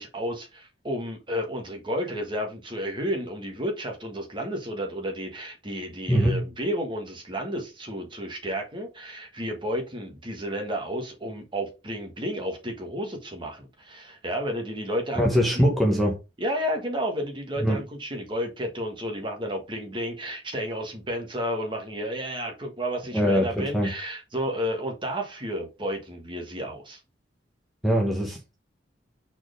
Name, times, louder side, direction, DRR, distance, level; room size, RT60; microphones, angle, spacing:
voice 1, 0.0-15.3 15.5-15.7 16.4-27.0, equal, 30° right, 1.5 m, -32 dB
voice 2, 6.1-6.4 15.2-16.1 17.6-17.8 23.1-23.9 27.8-28.6, equal, ahead, 1.1 m, -22 dB
4.5 x 4.3 x 5.1 m
head